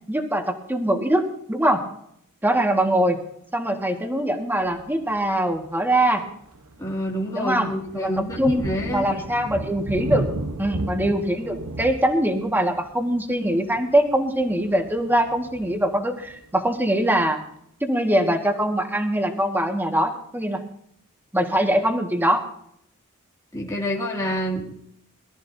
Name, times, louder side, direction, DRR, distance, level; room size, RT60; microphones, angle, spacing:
voice 1, 0.1-1.8 2.4-3.2 3.5-6.2 7.3-8.1 8.4-10.3 10.6-17.4 17.8-20.6 21.3-22.4, right 1 dB, 10° right, 3 dB, 1.8 m, -22 dB
Thunder, 4.6-4.9 5.5-5.6 6.1-16.6, right 1 dB, 80° right, 1.2 m, -35 dB
voice 2, 6.8-9.1 23.5-24.7, equal, 15° left, -3 dB, 2.5 m, -27 dB
22.5 x 13.5 x 2.8 m, 0.71 s
head